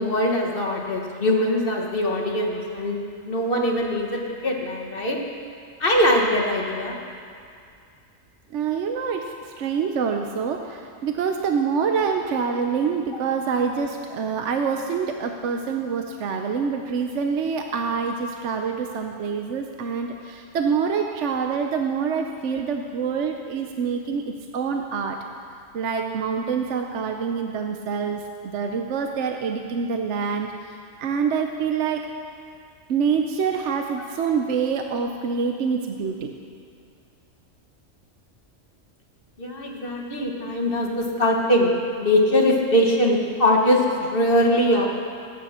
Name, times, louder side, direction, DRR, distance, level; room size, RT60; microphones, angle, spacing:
voice 1, 0.0-5.2 5.8-7.0 39.4-41.7 42.0-44.9, left 1 dB, 45° left, 0 dB, 1.6 m, -22 dB
voice 2, 8.5-25.2 25.7-32.1 32.9-36.3, right 6 dB, 65° right, 4 dB, 1.0 m, -26 dB
20.5 x 9.4 x 4.3 m, 2.3 s
omnidirectional pair, 1.4 m